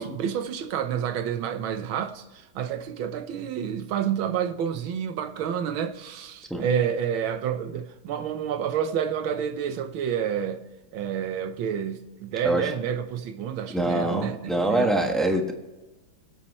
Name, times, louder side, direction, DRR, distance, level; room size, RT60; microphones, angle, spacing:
voice 1, 0.0-2.2 2.5-10.6 10.9-15.0, right 8 dB, 70° right, 1.6 m, -29 dB
voice 2, 13.7-15.5, right 1 dB, ahead, 0.8 m, -25 dB
22.5 x 8.6 x 3.2 m
omnidirectional pair, 2.4 m